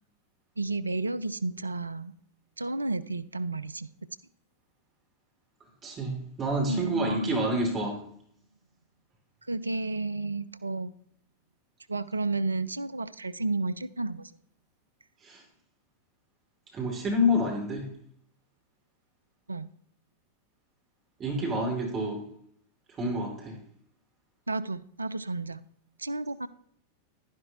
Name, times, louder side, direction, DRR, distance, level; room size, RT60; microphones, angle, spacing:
voice 1, 0.6-2.1 2.6-3.9 6.7-7.5 9.5-10.9 11.9-14.3 19.5-19.7 24.5-25.6 26.0-26.5, right 3 dB, 80° right, 15 dB, 0.4 m, -32 dB
voice 2, 5.8-8.0 15.2-15.4 16.7-17.9 21.2-22.2 23.0-23.6, left 1 dB, 25° right, 0 dB, 2.6 m, -28 dB
11.0 x 10.5 x 2.9 m, 0.65 s
figure-of-eight pair, 90°, 0 cm